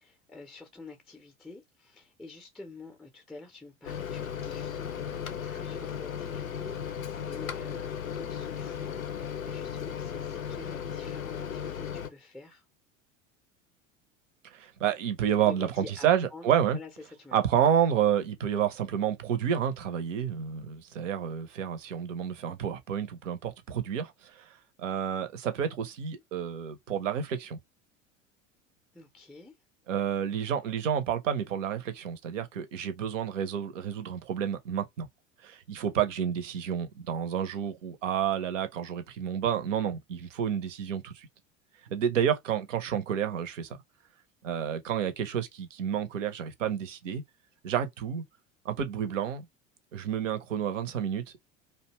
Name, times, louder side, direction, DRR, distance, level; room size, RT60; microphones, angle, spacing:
voice 1, 0.0-12.7 15.5-17.4 28.9-29.5, left 3 dB, ahead, 0.5 m, -48 dB
Microwave oven, 3.8-12.1, left 8 dB, 85° left, 0.5 m, -36 dB
voice 2, 14.4-16.8 17.3-24.5 24.8-27.6 29.9-35.1 35.4-41.3 41.9-43.8 44.4-47.2 47.6-48.2 48.6-49.5 49.9-51.4, right 9 dB, 65° right, 0.7 m, -30 dB
2.6 x 2.2 x 2.9 m
figure-of-eight pair, 75°, 40 cm